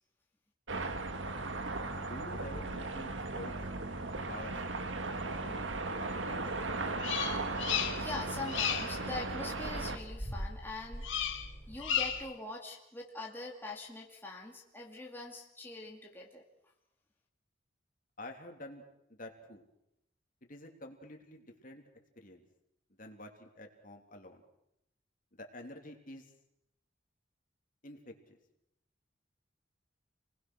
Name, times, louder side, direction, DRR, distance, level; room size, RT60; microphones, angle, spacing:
sound 1, 0.7-10.0, right 3 dB, 85° right, 1.9 m, -37 dB
sound 2, 0.8-12.2, equal, 15° right, 5.0 m, -48 dB
voice 1, 2.0-3.5 4.2-4.5 5.4-6.5 18.2-18.8 19.2-19.6 20.5-21.8 22.2-22.4 23.0-24.4 25.3-26.2 27.8-28.4, left 1 dB, 45° left, 3 dB, 3.3 m, -48 dB
Bird vocalization bird call bird song, 7.0-8.2 8.4-9.0 11.0-11.5 11.8-12.3, left 8 dB, 90° left, 2.4 m, -33 dB
voice 2, 8.0-11.4 11.7-16.5, left 3 dB, 10° left, -2 dB, 2.5 m, -43 dB
29.5 x 20.5 x 6.4 m, 0.82 s
head